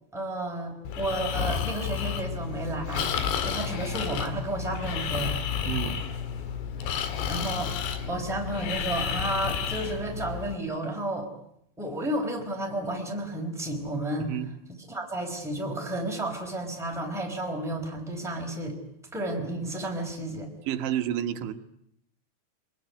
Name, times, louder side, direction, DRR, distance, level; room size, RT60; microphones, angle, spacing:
voice 1, 0.1-5.4 6.8-7.7 8.1-11.3 11.8-14.3 14.9-18.8 19.1-20.5, right 1 dB, ahead, 0 dB, 4.2 m, -32 dB
Breathing, 0.9-10.6, left 7 dB, 75° left, 4.1 m, -31 dB
voice 2, 5.7-6.0 14.2-14.5 20.7-21.5, right 10 dB, 90° right, 6 dB, 3.7 m, -30 dB
24.0 x 21.5 x 9.6 m, 0.74 s
omnidirectional pair, 5.2 m